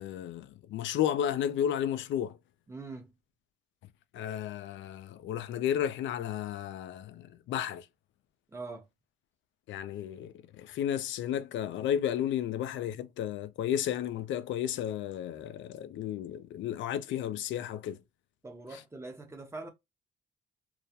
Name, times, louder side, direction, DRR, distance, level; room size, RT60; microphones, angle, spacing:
voice 1, 0.0-2.3 4.1-7.8 9.7-18.0, left 10 dB, 70° left, 0.4 m, -33 dB
voice 2, 2.7-3.1 8.5-8.9 18.4-19.7, right 3 dB, 15° right, 0.7 m, -43 dB
2.3 x 2.0 x 2.7 m
cardioid pair, 90°, 20 cm